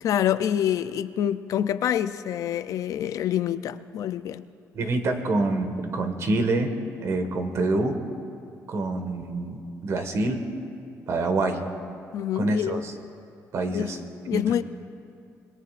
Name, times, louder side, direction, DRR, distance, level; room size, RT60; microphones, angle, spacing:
voice 1, 0.0-4.4 12.1-12.9 13.7-13.9 14.3-14.6, left 10 dB, 65° left, 0.5 m, -26 dB
voice 2, 4.7-6.7 7.0-8.0 8.7-10.4 11.1-11.6 12.3-12.9 13.5-14.0 14.3-14.4, right 2 dB, 50° right, 1.7 m, -26 dB
26.5 x 21.5 x 2.5 m
cardioid pair, 125°, 6 cm